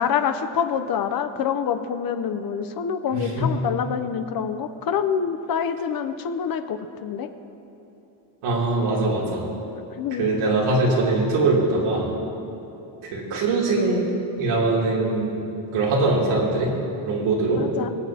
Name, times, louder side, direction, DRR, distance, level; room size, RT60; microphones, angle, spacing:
voice 1, 0.0-7.3 9.9-10.3 17.6-17.9, left 7 dB, 45° left, 9 dB, 0.7 m, -26 dB
voice 2, 8.4-9.5 10.2-12.1 13.1-14.0 14.4-15.4 15.7-16.7 17.0-17.6, right 2 dB, 85° right, -4 dB, 2.9 m, -22 dB
24.0 x 8.1 x 2.8 m, 3.0 s
cardioid pair, 145°, 49 cm